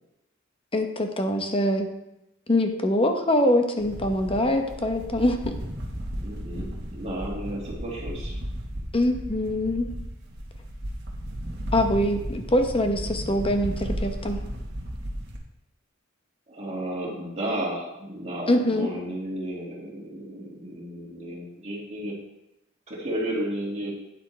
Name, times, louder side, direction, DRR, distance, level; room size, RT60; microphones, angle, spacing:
voice 1, 0.7-1.9 2.5-5.5 8.9-9.9 11.7-14.4 18.5-18.9, left 1 dB, 25° left, 5 dB, 0.9 m, -24 dB
sound 1, 3.8-15.4, equal, 55° right, 1.4 m, -34 dB
voice 2, 6.2-8.4 16.5-22.2 22.9-23.9, right 1 dB, 35° right, -3 dB, 2.2 m, -33 dB
9.5 x 8.0 x 3.3 m, 0.90 s
head